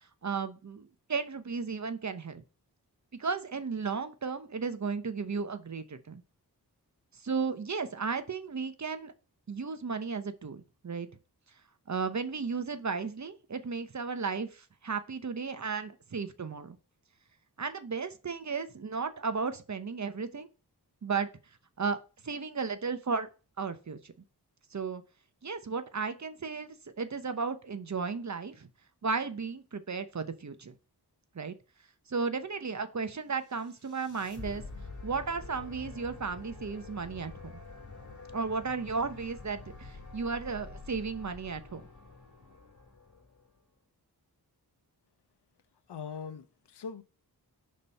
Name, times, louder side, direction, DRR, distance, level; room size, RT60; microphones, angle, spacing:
voice 1, 0.2-2.4 3.2-6.2 7.2-9.1 9.5-11.1 11.9-16.8 17.6-20.5 21.0-21.3 21.8-22.0 22.2-23.3 23.6-24.1 24.7-25.0 25.4-28.7 29.0-30.7 31.3-31.5 32.1-34.6 35.0-37.5 38.3-41.9, right 5 dB, 45° right, 0.9 m, -34 dB
sound 1, 33.4-43.6, left 3 dB, 50° left, 2.5 m, -47 dB
voice 2, 45.9-47.0, left 6 dB, 85° left, 0.7 m, -41 dB
5.2 x 4.2 x 5.3 m
wide cardioid pair, 65°, 39 cm